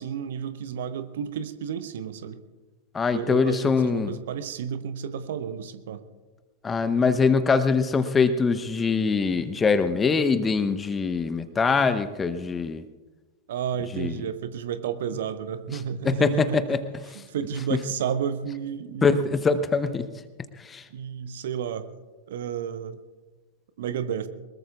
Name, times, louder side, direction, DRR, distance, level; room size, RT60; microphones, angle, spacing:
voice 1, 0.0-2.4 3.1-6.0 13.5-16.8 17.1-19.4 20.9-21.9 22.3-23.0 23.8-24.3, right 8 dB, 60° right, 12 dB, 0.9 m, -32 dB
voice 2, 2.9-4.2 6.6-12.8 13.9-14.2 16.0-16.8 17.7-17.8 19.0-20.1 20.6-20.8, left 5 dB, 15° left, 12 dB, 0.8 m, -23 dB
23.5 x 21.0 x 2.4 m, 1.3 s
figure-of-eight pair, 90°, 0 cm